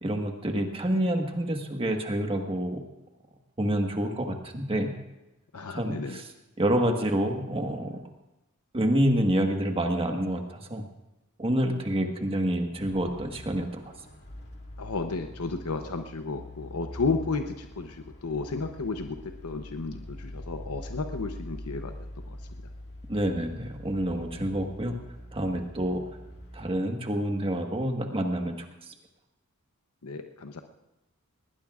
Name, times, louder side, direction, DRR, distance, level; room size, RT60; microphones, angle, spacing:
voice 1, 0.0-2.8 3.6-4.9 5.7-6.3 6.6-8.0 8.7-10.8 11.4-13.8 23.1-24.9 25.3-26.0 26.5-28.6, right 1 dB, 25° right, 3 dB, 1.5 m, -28 dB
voice 2, 5.5-6.2 14.8-22.4 30.0-30.6, left 3 dB, 80° left, 6 dB, 0.8 m, -33 dB
sound 1, 12.8-26.7, left 1 dB, 50° left, 2.2 m, -43 dB
20.0 x 19.0 x 2.5 m, 0.97 s
head